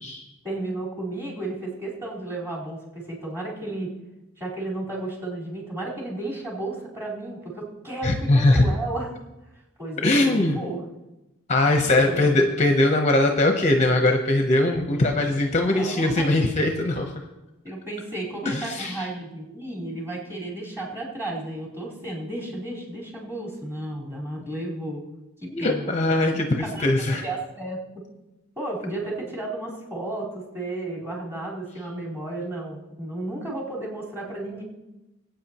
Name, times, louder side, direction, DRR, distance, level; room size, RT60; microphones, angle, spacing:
voice 1, 0.4-3.9 4.4-9.1 9.8-10.8 11.7-12.4 15.7-16.5 17.6-25.0 25.4-25.9 26.3-26.9 27.2-27.8 28.6-34.6, right 2 dB, 10° right, -7 dB, 4.3 m, -33 dB
voice 2, 8.0-8.7 10.0-10.6 11.5-17.1 18.5-19.0 25.5-27.2, left 2 dB, 35° left, 3 dB, 0.9 m, -21 dB
21.0 x 9.0 x 3.0 m, 1.0 s
head